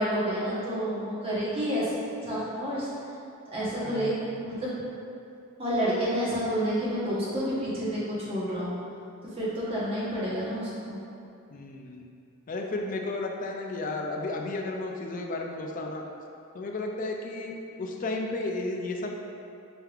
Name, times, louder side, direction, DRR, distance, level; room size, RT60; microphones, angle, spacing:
voice 1, 0.0-1.9 2.2-2.9 3.5-4.7 5.6-8.7 9.4-11.0, equal, 25° right, -9 dB, 1.0 m, -29 dB
voice 2, 3.8-4.3 11.5-12.1 12.5-16.0 16.5-19.2, left 2 dB, 40° left, 1 dB, 0.3 m, -33 dB
4.3 x 3.4 x 2.4 m, 2.6 s
head